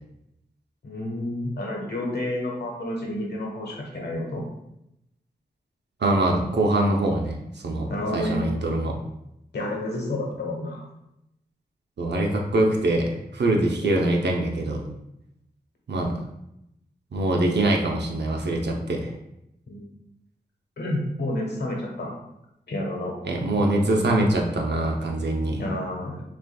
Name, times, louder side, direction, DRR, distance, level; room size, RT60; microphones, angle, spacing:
voice 1, 0.8-4.4 7.9-8.4 9.5-10.8 13.8-14.0 19.7-19.8 20.8-22.1 22.7-23.1 25.6-26.2, left 1 dB, 75° left, -1 dB, 1.1 m, -30 dB
voice 2, 6.0-7.4 7.6-9.0 12.0-13.1 13.3-14.8 15.9-16.1 17.1-19.1 23.2-25.6, right 1 dB, 80° right, 1 dB, 0.7 m, -23 dB
6.1 x 2.5 x 2.3 m, 0.83 s
wide cardioid pair, 75°, 18 cm